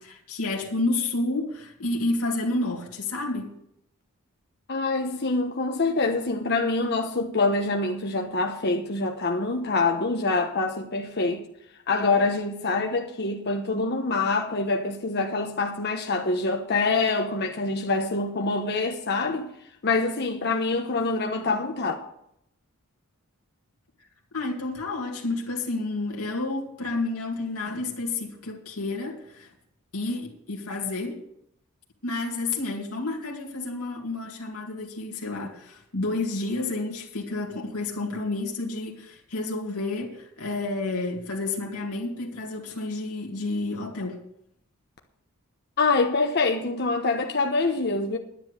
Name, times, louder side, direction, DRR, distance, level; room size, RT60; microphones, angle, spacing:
voice 1, 0.0-3.5 24.3-29.5 29.9-31.2 32.0-44.2, left 2 dB, 80° left, 2.2 m, -30 dB
voice 2, 4.7-11.4 11.9-19.5 19.8-21.9 45.8-48.2, left 3 dB, 50° left, 1.1 m, -25 dB
10.5 x 10.0 x 6.7 m
head